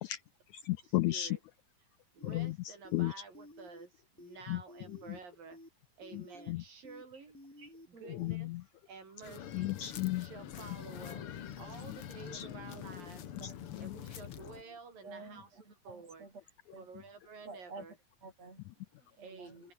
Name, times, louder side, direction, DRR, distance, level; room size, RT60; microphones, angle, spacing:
voice 1, 0.5-1.4 2.2-3.3 4.5-4.6 4.9-5.2 6.1-6.6 8.0-8.6 9.5-10.3 11.9-12.0 12.3-12.5 13.4-14.0, left 16 dB, 80° left, 1.7 m, -35 dB
voice 2, 1.1-1.4 2.1-5.6 6.0-7.4 7.9-8.5 8.9-9.7 10.2-13.2 13.8-15.5 15.8-16.3 16.8-18.0 19.2-19.7, right 5 dB, 80° right, 7.1 m, -51 dB
sound 1, 2.2-2.5 2.8-3.0 3.3-3.9 4.2-4.4 4.7-5.2 5.5-5.7 6.0-6.5 6.8-7.0 7.3-7.9 8.2-8.4, left 1 dB, 15° left, 0.4 m, -53 dB
voice 3, 7.6-8.4 9.3-9.4 11.6-11.7 12.4-12.8 13.4-13.5 15.0-16.4 16.7-16.9 17.4-17.8 18.2-19.6, right 3 dB, 50° right, 8.3 m, -52 dB
sound 2, 9.2-14.6, left 10 dB, 55° left, 1.8 m, -45 dB
omnidirectional pair, 3.9 m